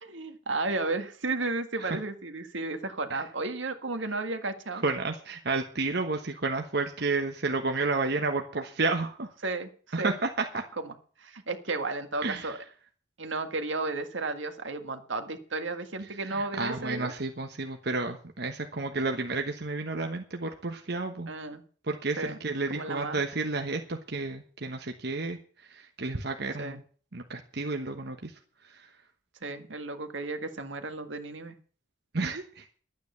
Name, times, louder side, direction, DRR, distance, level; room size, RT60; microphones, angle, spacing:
voice 1, 0.0-4.8 9.4-10.2 10.8-10.9 11.2-12.6 13.2-17.1 21.3-21.6 22.2-22.4 22.7-23.2 26.6-26.8 29.4-31.6, right 3 dB, 80° right, 7 dB, 1.8 m, -33 dB
voice 2, 4.8-9.3 9.9-10.6 12.2-12.6 16.2-21.3 21.8-26.8 27.1-28.3 28.6-28.9 32.1-32.7, right 3 dB, 55° right, 4 dB, 1.2 m, -31 dB
12.0 x 9.2 x 6.9 m, 0.43 s
head